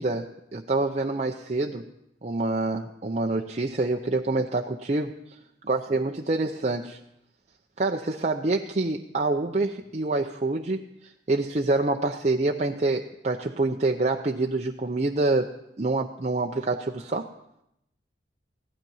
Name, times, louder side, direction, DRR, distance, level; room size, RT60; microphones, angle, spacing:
voice 1, 0.0-1.8 2.2-5.2 5.7-7.0 7.8-15.5 15.8-17.3, right 2 dB, 40° right, 2 dB, 0.6 m, -26 dB
16.0 x 12.0 x 5.5 m, 0.80 s
head